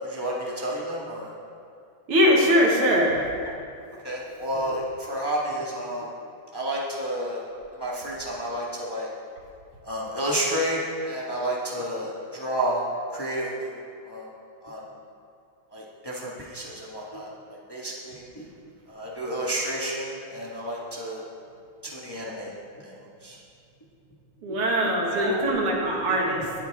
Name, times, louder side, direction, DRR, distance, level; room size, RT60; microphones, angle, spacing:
voice 1, 0.0-1.3 2.7-2.9 3.4-3.5 4.0-6.1 6.5-7.4 7.7-9.1 9.8-12.8 13.1-13.8 14.0-14.3 14.6-14.8 15.7-18.4 18.9-21.2 21.8-22.5 22.8-23.4 24.5-24.6 25.1-25.5 26.1-26.5, right 1 dB, 15° left, -4 dB, 1.2 m, -31 dB
voice 2, 2.1-3.1 24.4-26.4, equal, 85° right, -2 dB, 2.7 m, -21 dB
19.0 x 8.6 x 3.5 m, 2.4 s
omnidirectional pair, 2.4 m